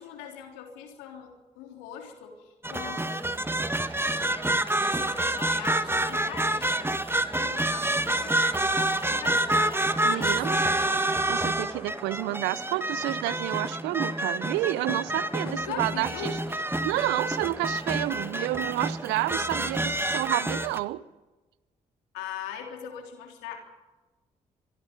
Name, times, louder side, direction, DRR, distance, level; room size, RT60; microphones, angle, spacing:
voice 1, 0.0-3.6 4.8-6.9 7.4-9.7 10.1-11.1 15.4-16.4 22.1-23.6, left 8 dB, 85° left, 3 dB, 3.4 m, -41 dB
sound 1, 2.6-20.8, right 1 dB, 15° right, 1.9 m, -28 dB
voice 2, 10.0-10.6 11.3-16.3 16.8-21.0, right 17 dB, 80° right, 20 dB, 0.7 m, -30 dB
24.5 x 23.5 x 5.3 m, 1.2 s
hypercardioid pair, 40°, 18 cm